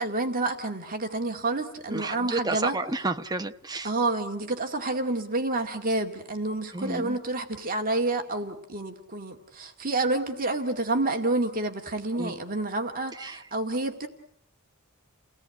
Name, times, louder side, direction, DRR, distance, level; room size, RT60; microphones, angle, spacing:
voice 1, 0.0-2.8 3.8-14.1, right 2 dB, 40° right, 2.2 m, -29 dB
voice 2, 1.9-3.9 6.7-7.2 12.2-12.3 13.2-13.4, right 2 dB, 20° right, 1.1 m, -31 dB
30.0 x 18.0 x 9.0 m
head